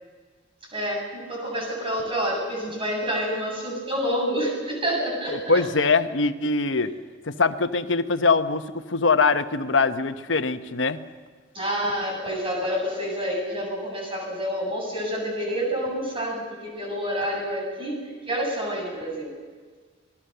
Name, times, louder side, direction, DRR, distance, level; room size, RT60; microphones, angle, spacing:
voice 1, 0.7-5.6 11.5-19.3, equal, 30° right, -1 dB, 7.9 m, -28 dB
voice 2, 5.3-7.0 7.2-11.0, left 4 dB, 80° left, 9 dB, 1.1 m, -23 dB
27.5 x 20.0 x 6.8 m, 1.5 s
head